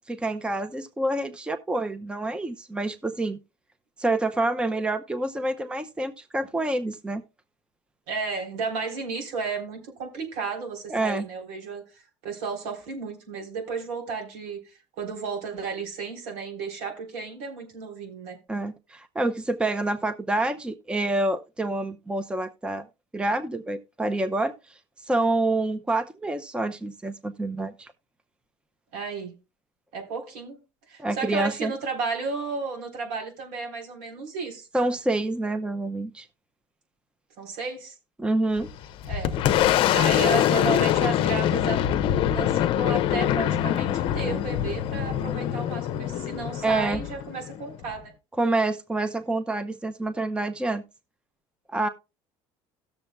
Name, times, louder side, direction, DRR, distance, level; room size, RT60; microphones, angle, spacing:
voice 1, 0.1-3.4 4.0-7.2 10.9-11.2 18.5-22.9 23.1-24.5 25.1-27.9 31.0-31.7 34.7-36.3 38.2-38.7 46.6-47.0 48.4-50.8 51.7-51.9, right 2 dB, 10° right, 0.6 m, -27 dB
voice 2, 8.1-18.4 28.9-29.3 29.9-30.6 30.9-34.7 37.4-38.0 39.1-39.4 39.9-41.8 42.3-48.1, right 4 dB, 80° right, 3.5 m, -33 dB
Boom, 38.6-48.0, left 11 dB, 55° left, 0.6 m, -24 dB
17.0 x 6.9 x 2.2 m
supercardioid pair, 110°, 11 cm